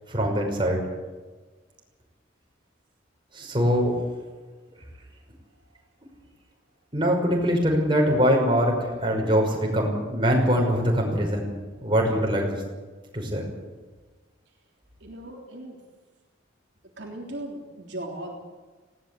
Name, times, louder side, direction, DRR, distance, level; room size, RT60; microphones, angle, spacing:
voice 1, 0.1-0.8 3.3-4.0 6.9-11.5 11.8-12.6 13.1-13.4, equal, 25° right, 0 dB, 5.7 m, -23 dB
voice 2, 15.0-15.8 17.0-18.3, right 1 dB, 60° right, -1 dB, 3.5 m, -37 dB
19.5 x 17.5 x 8.6 m, 1.3 s
head